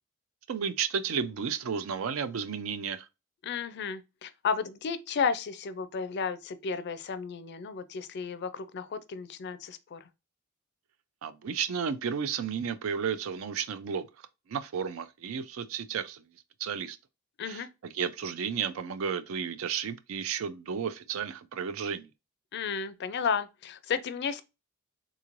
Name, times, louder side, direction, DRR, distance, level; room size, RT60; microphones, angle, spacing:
voice 1, 0.5-3.1 11.2-14.1 14.5-16.2 16.6-17.0 17.4-22.1, right 6 dB, 70° right, 0.4 m, -33 dB
voice 2, 3.4-10.0 17.4-17.7 22.5-24.4, left 6 dB, 50° left, 0.4 m, -33 dB
3.7 x 3.0 x 2.5 m
head